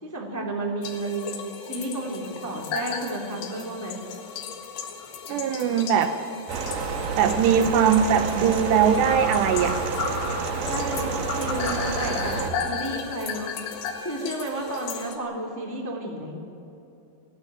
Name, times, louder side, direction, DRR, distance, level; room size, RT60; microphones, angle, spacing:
voice 1, 0.0-4.0 10.6-13.5 14.0-16.4, right 1 dB, 5° left, -1 dB, 1.9 m, -32 dB
sound 1, 0.8-15.2, left 7 dB, 65° left, 3.6 m, -39 dB
sound 2, 2.7-3.0 3.5-3.6 5.0-5.1 5.7-5.8 6.1-6.2 9.0-13.9, left 6 dB, 85° left, 4.6 m, -32 dB
voice 2, 5.3-6.1 7.2-9.8, right 8 dB, 75° right, 7 dB, 2.9 m, -21 dB
sound 3, 6.5-12.5, right 4 dB, 55° right, 2.8 m, -29 dB
22.0 x 15.5 x 9.2 m, 3.0 s
omnidirectional pair, 5.3 m